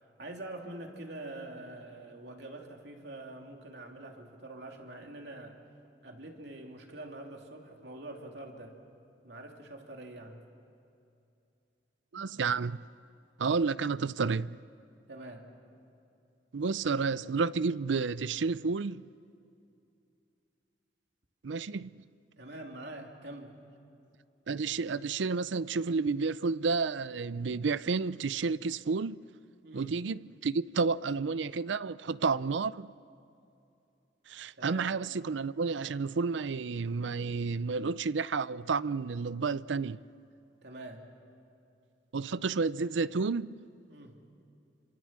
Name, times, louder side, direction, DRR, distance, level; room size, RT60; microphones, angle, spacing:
voice 1, 0.0-5.6 6.0-8.7 9.2-10.4 15.1-15.4 22.4-23.5 29.6-29.9 34.5-34.9 40.6-41.0 43.9-44.1, right 2 dB, 65° right, 3.0 m, -45 dB
voice 2, 12.1-12.8 13.4-14.6 16.5-19.0 21.4-22.0 24.5-29.2 29.7-32.9 34.3-40.0 42.1-43.6, right 4 dB, 85° right, 0.5 m, -31 dB
28.5 x 25.5 x 7.5 m
head